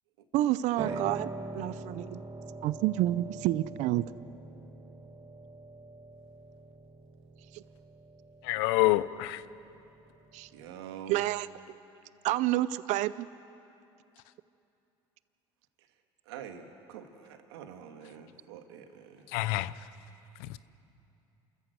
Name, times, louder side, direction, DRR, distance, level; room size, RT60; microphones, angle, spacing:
voice 1, 0.3-1.3 1.5-2.2 2.6-4.0 7.5-7.6 10.3-10.5 11.1-11.5 12.2-13.3, right 15 dB, 65° right, 0.6 m, -29 dB
Piano, 0.8-10.7, right 3 dB, 30° right, 2.1 m, -43 dB
voice 2, 8.4-9.4 19.3-19.9 20.4-20.6, left 17 dB, 80° left, 0.7 m, -28 dB
voice 3, 10.5-11.2 16.3-19.3, right 8 dB, 90° right, 1.8 m, -46 dB
29.0 x 14.0 x 8.1 m
supercardioid pair, 80°, 13 cm